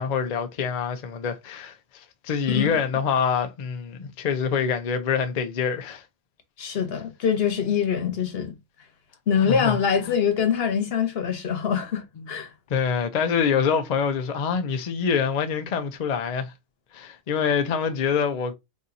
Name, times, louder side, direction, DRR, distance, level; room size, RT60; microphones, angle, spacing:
voice 1, 0.0-6.0 9.4-9.8 10.0-10.1 12.2-12.3 12.7-16.5 16.9-18.5, left 6 dB, 80° left, 0.3 m, -25 dB
voice 2, 2.5-2.8 6.6-8.6 9.3-12.5, left 7 dB, 50° left, 1.0 m, -24 dB
4.2 x 2.7 x 2.5 m
omnidirectional pair, 1.4 m